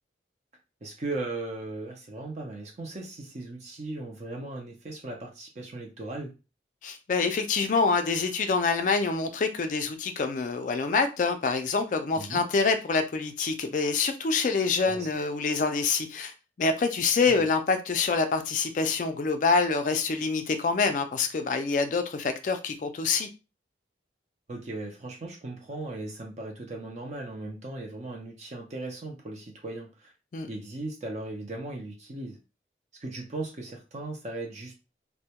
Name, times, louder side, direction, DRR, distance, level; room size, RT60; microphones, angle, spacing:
voice 1, 0.8-6.3 12.2-12.4 14.9-15.1 24.5-30.1 30.5-32.4 33.0-34.7, right 2 dB, 40° right, 0.4 m, -37 dB
voice 2, 6.8-16.3 16.6-23.3 30.3-30.5, left 4 dB, 45° left, 0.3 m, -26 dB
2.1 x 2.0 x 2.8 m
head